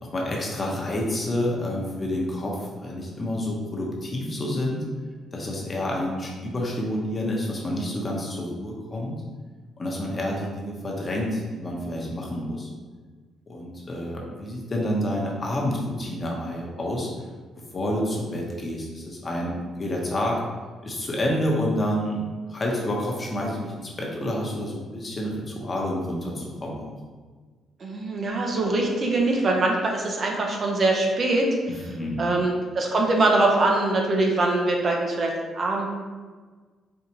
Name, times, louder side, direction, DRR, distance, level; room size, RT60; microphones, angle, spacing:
voice 1, 0.0-4.8 5.3-9.1 9.8-12.7 13.5-17.1 17.7-20.4 20.8-22.2 22.5-26.9 31.9-32.2, left 1 dB, 30° left, -2 dB, 0.8 m, -28 dB
voice 2, 27.8-31.5 32.2-35.9, right 2 dB, 45° right, 0 dB, 0.6 m, -23 dB
4.4 x 2.4 x 2.9 m, 1.4 s
cardioid pair, 90°, 0 cm